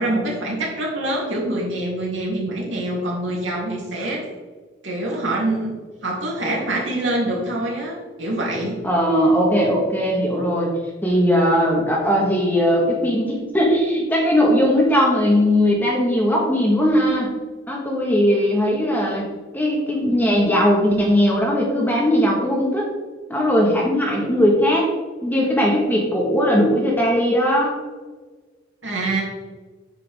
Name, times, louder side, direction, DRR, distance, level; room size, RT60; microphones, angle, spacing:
voice 1, 0.0-4.3 4.8-8.8 28.8-29.2, right 1 dB, 75° right, -3 dB, 3.2 m, -25 dB
voice 2, 8.8-10.7 11.0-17.3 17.7-19.2 19.5-22.9 23.3-24.9 25.2-27.7, equal, 10° left, -2 dB, 1.6 m, -19 dB
9.3 x 8.3 x 3.6 m, 1.3 s
head